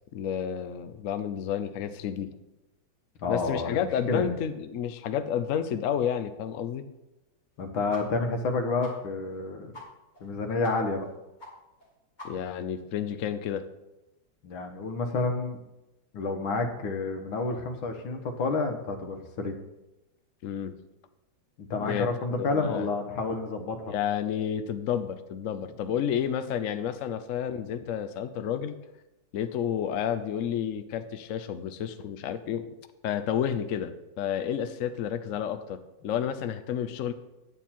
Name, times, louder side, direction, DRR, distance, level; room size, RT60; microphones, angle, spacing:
voice 1, 0.1-2.3 3.3-6.9 12.2-13.7 20.4-20.8 21.8-22.1 22.4-22.9 23.9-28.8 29.3-32.6 33.0-37.1, left 9 dB, 65° left, 10 dB, 0.8 m, -30 dB
voice 2, 3.2-4.3 7.6-9.7 10.2-11.1 14.4-15.6 16.1-19.5 21.6-23.9, left 3 dB, 90° left, 5 dB, 2.0 m, -30 dB
sound 1, 7.9-8.0 8.3-8.4 8.8-8.9 9.3-9.4 9.7-9.9 10.1-10.3 10.6-10.7 11.0-11.1 11.4-11.5 11.8-11.9 12.2-12.6, left 3 dB, 20° left, 2.4 m, -43 dB
9.9 x 9.1 x 4.4 m, 0.99 s
omnidirectional pair, 2.1 m